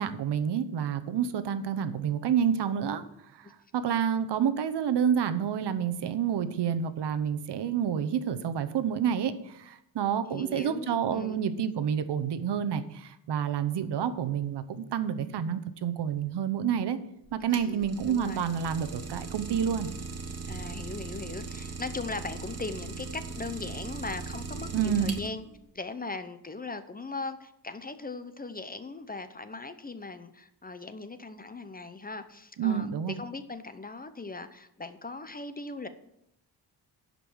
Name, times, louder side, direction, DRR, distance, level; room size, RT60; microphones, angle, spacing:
voice 1, 0.0-3.0 3.3-17.0 17.3-19.9 24.7-25.2 32.6-33.2, right 8 dB, 70° right, 11 dB, 0.9 m, -29 dB
voice 2, 10.3-11.5 17.5-18.5 20.5-25.4 25.7-32.9 33.2-35.9, left 3 dB, 20° left, 11 dB, 0.6 m, -39 dB
Idling, 17.2-25.6, right 4 dB, 35° right, 1.5 m, -39 dB
11.0 x 5.3 x 6.2 m, 0.80 s
cardioid pair, 100°, 42 cm